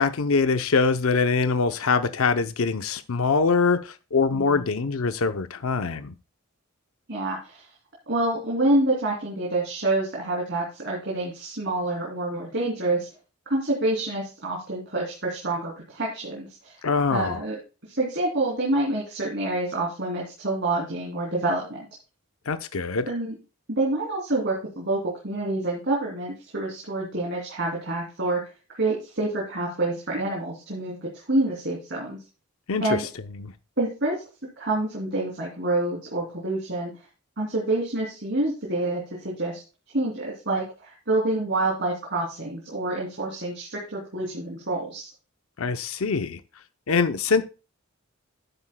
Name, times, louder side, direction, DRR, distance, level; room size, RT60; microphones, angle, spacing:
voice 1, 0.0-6.1 16.8-17.4 22.5-23.1 32.7-33.0 33.4-33.5 45.6-46.4 46.9-47.4, left 4 dB, 70° left, 0.6 m, -23 dB
voice 2, 4.3-4.6 7.1-7.6 8.1-13.1 13.5-16.7 17.1-17.6 17.9-21.8 23.1-23.3 23.7-28.4 28.7-32.2 32.8-33.1 33.8-34.2 34.6-36.9 37.4-39.6 39.9-45.1, right 2 dB, 55° right, 3.0 m, -27 dB
12.0 x 9.8 x 2.2 m
head